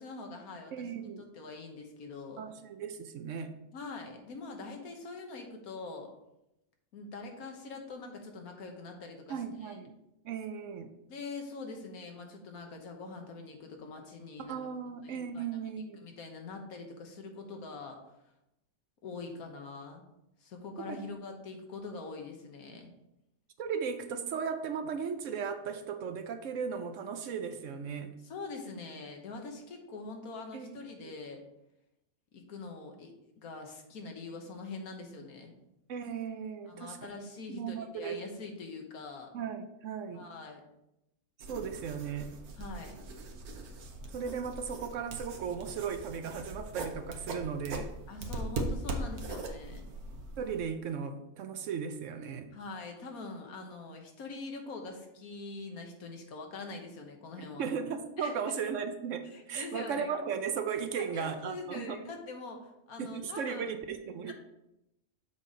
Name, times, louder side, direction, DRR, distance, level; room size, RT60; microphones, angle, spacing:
voice 1, 0.0-2.4 3.7-6.1 6.9-9.8 11.1-14.6 15.0-15.7 16.0-18.0 19.0-20.0 20.4-22.9 28.2-31.4 32.3-33.1 33.4-35.5 36.7-39.3 40.1-40.6 42.5-43.0 48.1-49.9 52.5-57.7 58.2-58.4 59.3-60.1 60.9-63.7 64.3-64.4, left 3 dB, 80° left, 3 dB, 1.6 m, -44 dB
voice 2, 0.7-1.3 2.4-3.5 9.3-10.0 10.2-10.9 14.5-16.1 20.9-21.0 23.6-28.1 30.5-30.8 31.0-31.1 35.9-37.2 37.5-38.2 39.3-40.3 41.5-42.3 44.1-47.9 50.4-52.5 57.6-59.2 59.5-62.0 63.0-64.3, right 6 dB, 65° right, 8 dB, 0.9 m, -36 dB
sound 1, 41.4-50.6, right 2 dB, 90° right, 1.4 m, -40 dB
7.3 x 4.1 x 4.9 m, 0.86 s
omnidirectional pair, 1.5 m